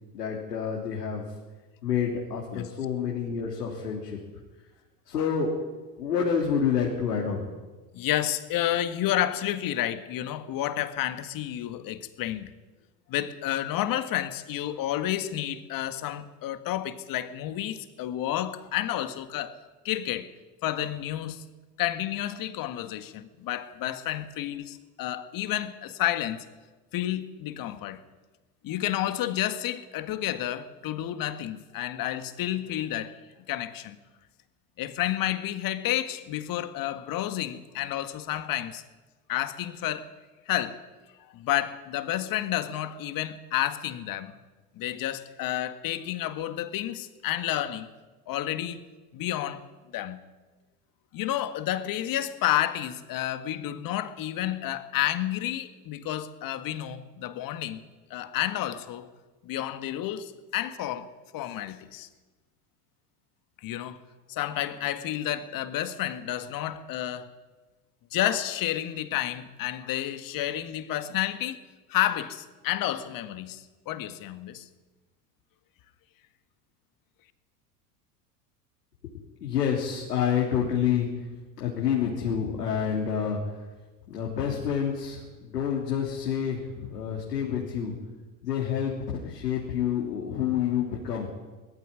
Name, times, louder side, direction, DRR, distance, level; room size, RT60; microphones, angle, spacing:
voice 1, 0.1-1.2 1.8-4.2 5.1-5.6 6.0-7.5 79.4-81.3 81.6-83.6 84.1-87.9 88.4-88.9 89.2-91.3, left 7 dB, 80° left, 3.7 m, -28 dB
voice 2, 7.9-12.5 13.1-19.6 19.8-20.3 20.6-21.4 21.8-26.5 26.9-28.0 28.6-33.2 33.5-34.0 34.8-38.8 39.3-40.1 40.5-40.8 41.3-44.4 44.7-47.9 48.3-48.8 49.1-49.6 49.9-50.2 51.1-57.8 58.1-59.1 59.4-62.1 63.6-64.0 64.3-67.3 68.1-71.6 71.9-74.7, left 13 dB, 45° left, 1.9 m, -30 dB
20.0 x 14.5 x 9.8 m
hypercardioid pair, 85°, 47 cm